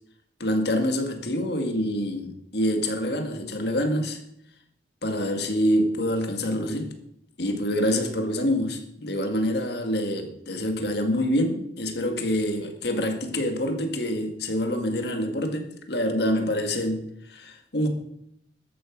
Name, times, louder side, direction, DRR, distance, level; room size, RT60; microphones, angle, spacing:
voice 1, 0.4-4.2 5.0-6.9 7.4-17.9, equal, 60° left, 1.8 m, -26 dB
13.5 x 8.9 x 6.0 m
head